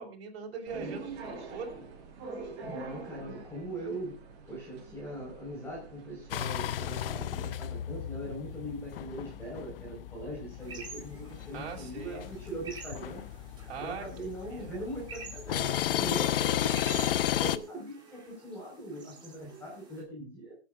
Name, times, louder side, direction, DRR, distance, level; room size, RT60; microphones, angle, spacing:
voice 1, 0.0-1.8 11.5-12.3 13.7-14.1 14.5-14.8, right 5 dB, 60° right, 2 dB, 5.7 m, -41 dB
voice 2, 0.7-1.0 2.6-13.2 13.7-20.5, right 1 dB, 5° left, -3 dB, 4.9 m, -41 dB
sound 1, 0.7-7.2, right 4 dB, 35° right, 7.2 m, -45 dB
sound 2, 6.3-17.6, left 11 dB, 55° left, 0.8 m, -34 dB
sound 3, 10.6-20.0, right 4 dB, 15° right, 4.2 m, -49 dB
26.5 x 9.2 x 2.5 m, 0.31 s
hypercardioid pair, 145°, 34 cm